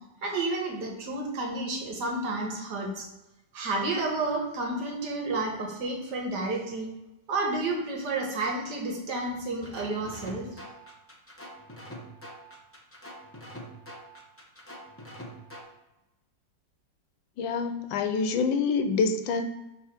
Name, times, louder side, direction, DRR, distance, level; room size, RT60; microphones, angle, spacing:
voice 1, 0.2-3.1 3.5-6.9 7.3-10.5, right 2 dB, 65° right, 1 dB, 1.7 m, -31 dB
sound 1, 9.6-15.6, equal, 15° left, 0.4 m, -45 dB
voice 2, 17.4-19.4, left 5 dB, 90° left, 8 dB, 1.4 m, -26 dB
4.8 x 3.7 x 5.7 m, 0.97 s
omnidirectional pair, 2.0 m